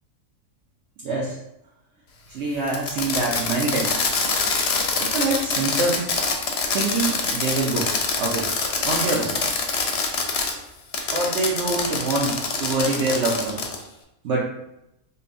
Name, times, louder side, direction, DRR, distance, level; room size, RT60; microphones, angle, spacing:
voice 1, 1.0-1.4 2.3-4.1 5.0-6.1 6.7-7.9 8.2-8.5 8.8-9.4 11.1-13.6 14.2-14.5, right 3 dB, 60° right, -4 dB, 0.8 m, -25 dB
Fireworks, 2.7-10.5 10.9-13.8, left 4 dB, 60° left, 0.7 m, -25 dB
5.3 x 2.2 x 2.5 m, 0.84 s
omnidirectional pair, 1.5 m